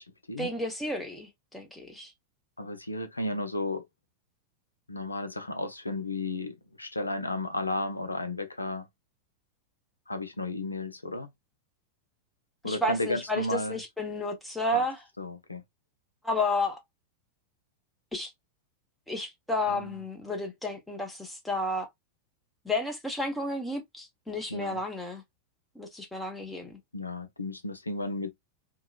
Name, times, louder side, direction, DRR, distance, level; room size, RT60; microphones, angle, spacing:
voice 1, 0.4-2.1 12.6-15.0 16.2-16.8 18.1-18.3 19.1-21.9 22.6-25.2 25.8-26.8, left 1 dB, 5° left, 0.8 m, -32 dB
voice 2, 2.6-3.8 4.9-8.9 10.1-11.3 12.6-13.8 14.7-14.9 15.2-15.6 19.7-19.9 24.5-24.8 26.9-28.3, left 2 dB, 80° left, 0.5 m, -33 dB
2.8 x 2.2 x 2.3 m
figure-of-eight pair, 90°, 0 cm